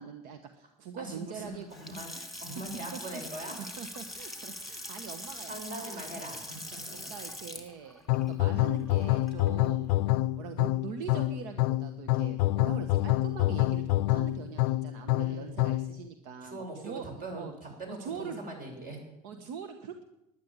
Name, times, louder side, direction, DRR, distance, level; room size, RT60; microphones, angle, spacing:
voice 1, 0.0-1.7 2.1-2.4 2.9-6.2 6.9-9.9 10.4-17.5 17.9-18.4 19.2-20.0, right 7 dB, 80° right, 7 dB, 1.2 m, -43 dB
voice 2, 1.0-3.7 5.5-7.1 8.1-8.4 15.2-15.6 16.4-19.0, right 1 dB, 45° right, 2 dB, 6.9 m, -42 dB
Water tap faucet / Sink (filling or washing) / Splash splatter, 1.6-9.7, left 1 dB, ahead, 2.8 m, -43 dB
sound 1, 8.1-16.0, left 17 dB, 85° left, 0.4 m, -27 dB
11.5 x 10.5 x 8.9 m, 0.92 s
supercardioid pair, 85°, 20 cm